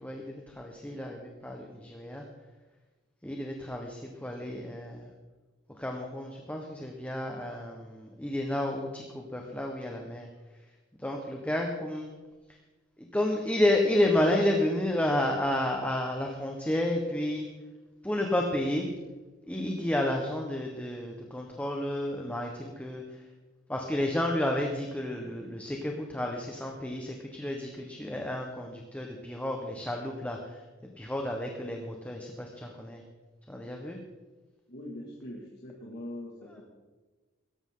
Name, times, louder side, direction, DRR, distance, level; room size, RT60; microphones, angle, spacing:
voice 1, 0.0-2.2 3.2-5.1 5.8-10.3 11.0-12.1 13.0-17.5 18.0-18.9 19.5-23.0 23.7-33.0 33.5-34.0, left 1 dB, 5° left, 1 dB, 1.3 m, -31 dB
voice 2, 34.7-36.6, left 1 dB, 50° left, -4 dB, 2.4 m, -42 dB
17.0 x 14.5 x 3.9 m, 1.3 s
head